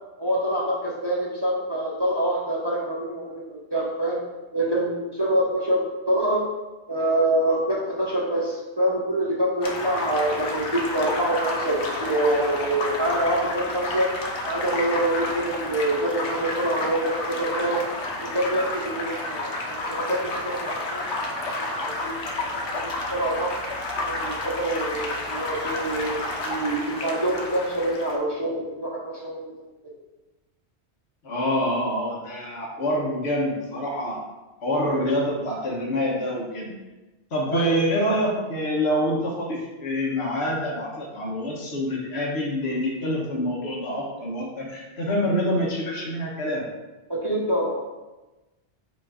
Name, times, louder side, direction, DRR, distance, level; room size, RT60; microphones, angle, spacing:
voice 1, 0.2-4.2 4.5-6.4 6.9-14.1 14.4-17.8 18.2-22.3 22.7-23.6 24.0-29.6 37.5-37.8 47.1-47.8, right 1 dB, 25° right, -4 dB, 0.8 m, -26 dB
sound 1, 9.6-28.2, left 2 dB, 85° left, 1.2 m, -31 dB
voice 2, 31.2-34.2 34.6-36.7 37.3-46.6, equal, 65° left, -4 dB, 1.4 m, -26 dB
7.5 x 2.5 x 4.9 m, 1.1 s
omnidirectional pair, 1.2 m